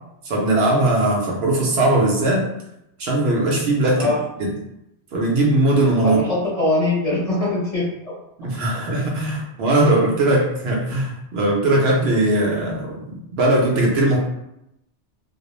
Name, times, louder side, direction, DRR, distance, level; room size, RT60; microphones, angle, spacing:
voice 1, 0.2-2.5 3.0-4.1 4.4-4.5 5.1-6.2 8.4-13.0 13.3-14.2, right 2 dB, 70° right, -2 dB, 0.8 m, -19 dB
voice 2, 6.0-8.1, left 2 dB, 35° left, -8 dB, 0.8 m, -22 dB
2.3 x 2.0 x 2.9 m, 0.84 s
omnidirectional pair, 1.1 m